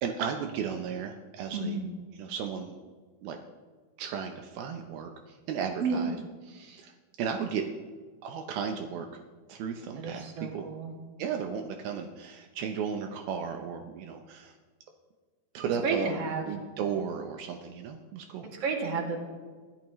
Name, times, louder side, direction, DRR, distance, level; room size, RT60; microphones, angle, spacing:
voice 1, 0.0-1.8 2.2-2.9 3.2-3.4 4.0-6.1 6.5-6.9 7.2-7.7 8.2-9.2 9.5-10.2 10.5-10.7 11.2-14.5 15.5-16.1 16.4-18.5, right 7 dB, 85° right, 4 dB, 2.1 m, -35 dB
voice 2, 1.5-1.9 5.8-6.1 10.0-10.9 15.8-16.5 18.6-19.2, right 4 dB, 40° right, 0 dB, 2.5 m, -31 dB
24.0 x 14.0 x 3.1 m, 1.5 s
omnidirectional pair, 5.5 m